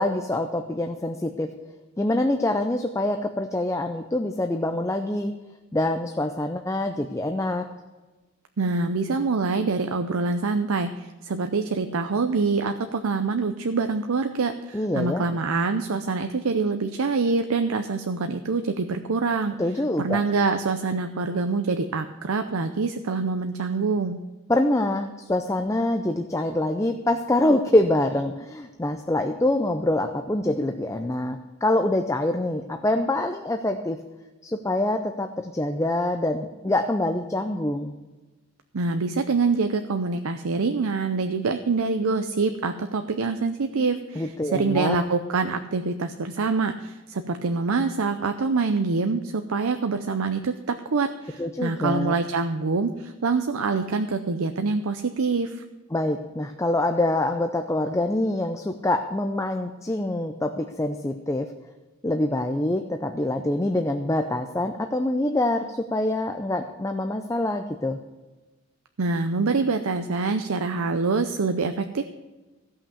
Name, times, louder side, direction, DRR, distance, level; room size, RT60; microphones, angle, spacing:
voice 1, 0.0-1.5 2.0-5.3 5.7-7.7 14.7-15.2 19.6-20.2 24.5-34.0 34.4-37.9 44.2-45.0 51.4-52.2 55.9-61.5 62.0-68.0, left 1 dB, 15° left, 6 dB, 0.5 m, -25 dB
voice 2, 8.6-19.5 20.0-24.2 38.7-55.6 69.0-72.0, right 4 dB, 85° right, 8 dB, 0.6 m, -25 dB
15.5 x 5.8 x 6.9 m, 1.2 s
head